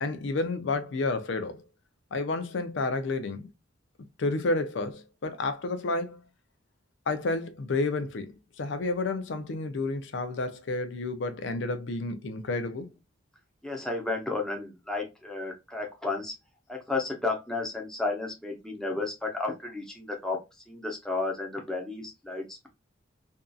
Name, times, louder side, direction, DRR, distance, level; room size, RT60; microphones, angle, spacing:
voice 1, 0.0-1.6 2.1-3.5 4.2-6.2 7.1-12.9, left 3 dB, 70° left, 0.5 m, -30 dB
voice 2, 13.6-16.3 16.7-20.4 20.7-22.7, left 3 dB, 5° left, 0.6 m, -32 dB
2.6 x 2.4 x 2.2 m
head